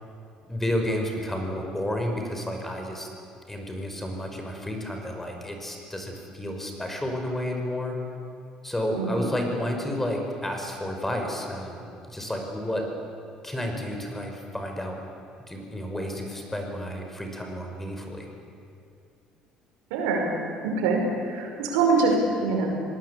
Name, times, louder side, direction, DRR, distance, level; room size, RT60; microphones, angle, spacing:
voice 1, 0.5-3.1 3.5-8.0 8.6-12.9 13.4-15.0 15.5-18.3, left 1 dB, 10° left, 3 dB, 5.6 m, -31 dB
voice 2, 8.9-9.3 19.9-20.3 20.6-22.7, right 3 dB, 90° right, 1 dB, 5.3 m, -24 dB
25.5 x 19.0 x 8.5 m, 2.4 s
supercardioid pair, 85°, 2 cm